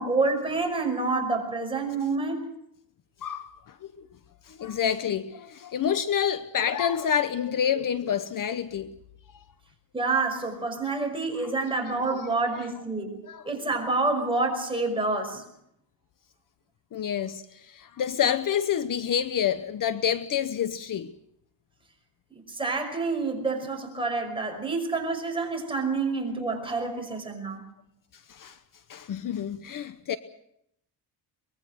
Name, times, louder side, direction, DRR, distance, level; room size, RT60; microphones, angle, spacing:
voice 1, 0.0-2.4 9.9-13.2 13.4-15.4 22.5-27.7, right 3 dB, 10° right, 5.5 m, -28 dB
voice 2, 3.2-4.1 4.4-9.0 9.3-9.4 11.3-11.5 12.5-12.6 13.2-13.5 16.9-21.1 28.3-28.6 28.9-30.2, left 9 dB, 50° left, 1.0 m, -28 dB
23.5 x 21.5 x 6.5 m
cardioid pair, 135°, 41 cm